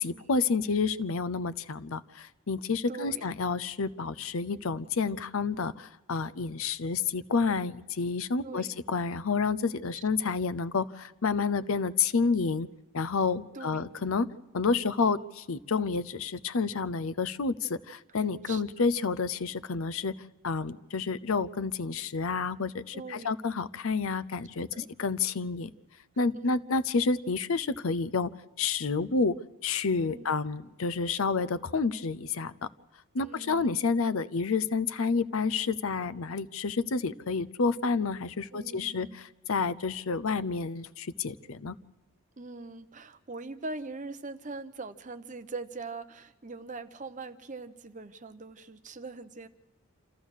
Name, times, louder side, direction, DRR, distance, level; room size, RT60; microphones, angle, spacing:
voice 1, 0.0-12.7 12.9-14.3 14.5-20.1 20.4-25.7 26.2-28.3 28.6-29.4 29.6-32.7 33.1-41.8, left 4 dB, 70° left, 15 dB, 0.6 m, -29 dB
voice 2, 2.9-3.3 8.4-8.7 13.5-13.9 18.5-18.6 22.9-23.4 24.5-24.9 26.3-26.6 30.1-30.3 33.2-33.8 38.5-39.2 42.4-49.5, right 3 dB, 35° right, 10 dB, 0.8 m, -42 dB
27.5 x 14.5 x 6.4 m, 1.1 s
head